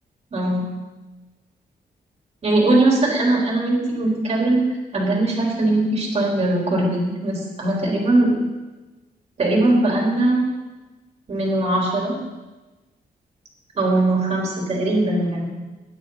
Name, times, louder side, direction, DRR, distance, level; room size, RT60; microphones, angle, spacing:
voice 1, 0.3-0.7 2.4-4.6 4.9-8.3 9.4-10.4 11.3-12.2 13.8-15.5, right 2 dB, 40° right, -2 dB, 3.7 m, -20 dB
17.0 x 11.0 x 4.0 m, 1.2 s
wide cardioid pair, 155°, 17 cm